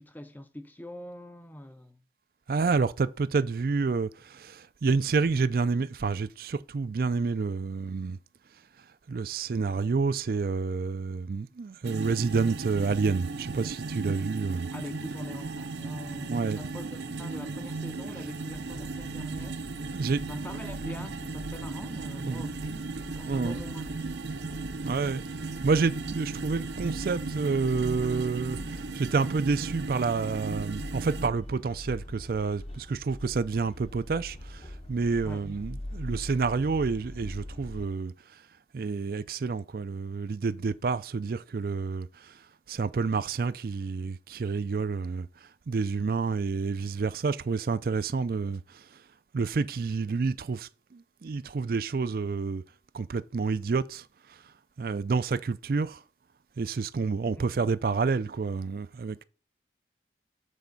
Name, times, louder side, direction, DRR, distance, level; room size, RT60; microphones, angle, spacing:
voice 1, 0.0-2.0 14.7-19.6 20.3-23.9 35.2-35.5 57.4-57.5, left 1 dB, 10° left, 0.6 m, -43 dB
voice 2, 2.5-8.2 9.1-14.7 16.3-16.6 19.9-20.2 22.2-22.5 23.3-23.6 24.8-25.2 25.6-38.1 38.7-42.3 42.7-45.3 45.7-48.8 49.3-52.6 52.9-54.4 54.8-56.0 56.6-59.2, right 4 dB, 55° right, 0.4 m, -29 dB
sound 1, 11.8-31.3, right 3 dB, 80° right, 0.7 m, -36 dB
sound 2, 18.5-37.9, left 1 dB, 35° left, 0.9 m, -43 dB
8.3 x 4.3 x 5.2 m
head